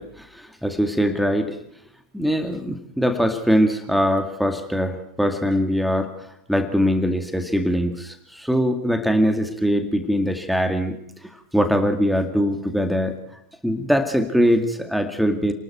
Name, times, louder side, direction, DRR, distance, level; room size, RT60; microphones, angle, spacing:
voice 1, 0.0-1.6 2.1-6.1 6.5-11.0 11.2-13.2 13.6-15.5, equal, ahead, 6 dB, 2.2 m, -22 dB
29.5 x 20.5 x 4.5 m, 0.70 s
figure-of-eight pair, 90°, 0 cm